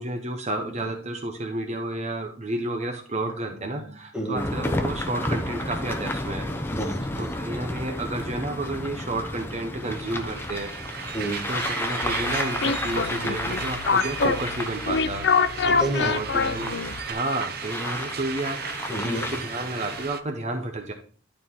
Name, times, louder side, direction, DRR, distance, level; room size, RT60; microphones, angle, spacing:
voice 1, 0.0-6.8 7.2-10.7 11.5-15.3 16.0-16.8 17.1-18.6 19.0-20.9, right 2 dB, 40° right, 4 dB, 1.0 m, -31 dB
sound 1, 4.4-20.1, left 1 dB, 15° left, 0.7 m, -32 dB
voice 2, 6.7-7.2 11.1-11.4 15.6-16.1 18.9-19.3, right 1 dB, 5° right, -2 dB, 2.2 m, -29 dB
sound 2, 9.8-20.2, right 7 dB, 60° right, 0.7 m, -36 dB
sound 3, 12.0-17.1, left 5 dB, 70° left, 0.6 m, -26 dB
12.0 x 4.3 x 3.6 m, 0.43 s
head